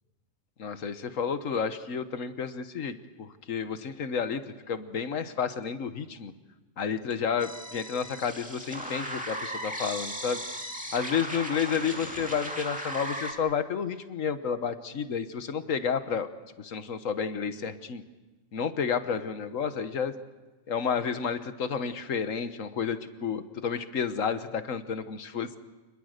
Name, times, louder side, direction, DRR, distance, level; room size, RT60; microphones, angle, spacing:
voice 1, 0.6-4.4 4.7-6.3 6.8-10.4 10.9-16.3 16.6-18.0 18.5-20.1 20.7-25.6, left 6 dB, 80° left, 10 dB, 1.5 m, -31 dB
sound 1, 7.4-13.3, equal, 5° right, 2.4 m, -37 dB
27.5 x 20.5 x 6.6 m, 1.2 s
omnidirectional pair, 1.4 m